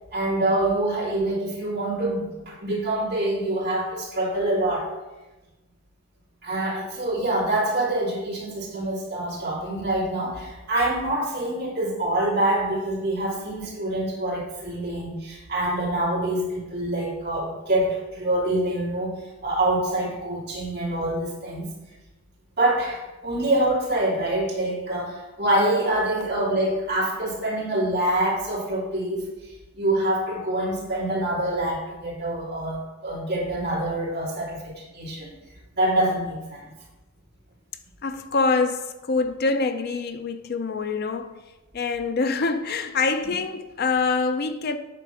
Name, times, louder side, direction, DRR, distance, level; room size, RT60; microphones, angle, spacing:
voice 1, 0.1-4.9 6.4-21.7 22.6-35.3 35.7-36.7, right 1 dB, 45° right, 2.9 m, -26 dB
voice 2, 38.0-41.4 41.7-44.8, left 4 dB, 45° left, 0.4 m, -25 dB
9.0 x 3.5 x 6.1 m
head